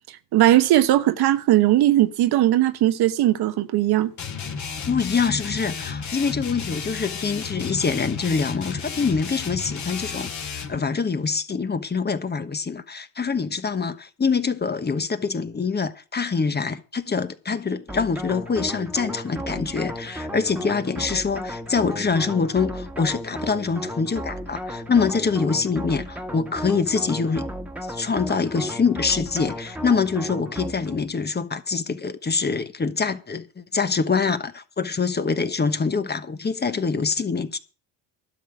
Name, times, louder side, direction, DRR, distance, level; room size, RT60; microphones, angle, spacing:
voice 1, 0.3-4.1, right 14 dB, 65° right, 1.2 m, -18 dB
sound 1, 4.2-10.8, left 6 dB, 45° left, 2.3 m, -32 dB
voice 2, 4.9-10.3 10.5-27.5 27.9-37.6, left 5 dB, 25° left, 1.2 m, -25 dB
sound 2, 17.9-31.1, equal, 5° right, 1.6 m, -34 dB
12.5 x 5.7 x 9.0 m
supercardioid pair, 80°, 42 cm